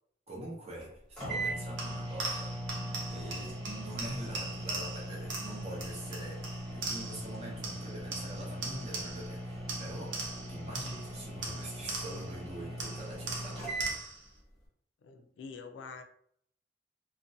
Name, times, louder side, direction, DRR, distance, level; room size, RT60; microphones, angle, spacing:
voice 1, 0.3-2.5 3.1-10.2 10.5-13.8, right 1 dB, 35° right, 0.7 m, -44 dB
sound 1, 0.8-0.9 1.2-14.0, right 1 dB, 5° left, 1.1 m, -40 dB
sound 2, 1.8-7.3 7.6-9.4 9.7-12.4 12.8-14.3, right 3 dB, 80° right, 0.6 m, -41 dB
voice 2, 15.0-16.0, left 5 dB, 80° left, 0.3 m, -46 dB
2.5 x 2.1 x 2.6 m
head